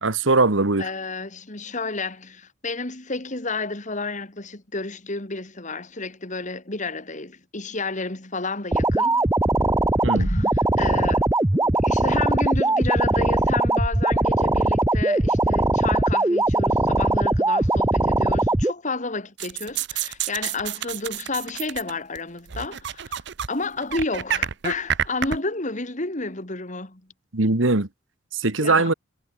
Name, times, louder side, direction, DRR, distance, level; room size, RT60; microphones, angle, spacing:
voice 1, 0.0-0.9 10.0-10.3 27.3-27.9 28.4-28.9, right 3 dB, 85° right, 1.8 m, -20 dB
voice 2, 0.8-9.3 10.2-11.3 11.5-23.2 23.5-27.0 28.6-28.9, left 3 dB, 40° left, 2.8 m, -31 dB
sound 1, 8.7-18.7, right 2 dB, 15° right, 0.7 m, -21 dB
sound 2, 19.4-22.2 22.5-23.5 23.8-25.4, right 9 dB, 60° right, 0.7 m, -28 dB
head